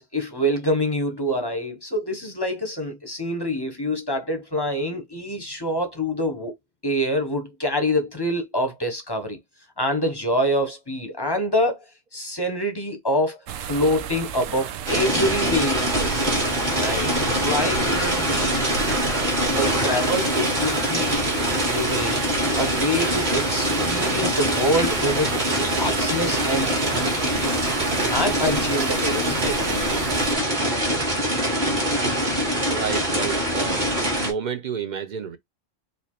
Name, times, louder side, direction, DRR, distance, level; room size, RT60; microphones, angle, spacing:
voice 1, 0.0-6.5 6.8-9.4 9.8-16.1 16.8-18.6 19.1-21.2 21.6-22.3 22.6-27.6 28.1-29.8 30.7-31.1, equal, 25° left, 0.5 m, -26 dB
sound 1, 13.5-30.4, right 8 dB, 90° right, 0.9 m, -33 dB
sound 2, 14.9-34.3, equal, 40° right, 1.4 m, -23 dB
voice 2, 32.7-33.9 34.2-35.4, right 7 dB, 60° right, 0.5 m, -30 dB
4.2 x 2.6 x 2.9 m
omnidirectional pair, 1.3 m